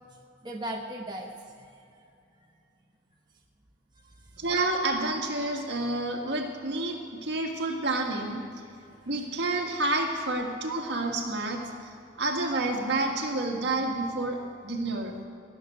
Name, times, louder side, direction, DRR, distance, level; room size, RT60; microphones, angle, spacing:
voice 1, 0.4-1.7 4.0-4.5 8.7-9.2, right 1 dB, 25° right, -1 dB, 1.0 m, -39 dB
voice 2, 4.4-8.4 9.1-11.6 12.2-15.2, right 2 dB, 60° right, 1 dB, 1.8 m, -29 dB
18.5 x 6.8 x 7.7 m, 2.6 s
head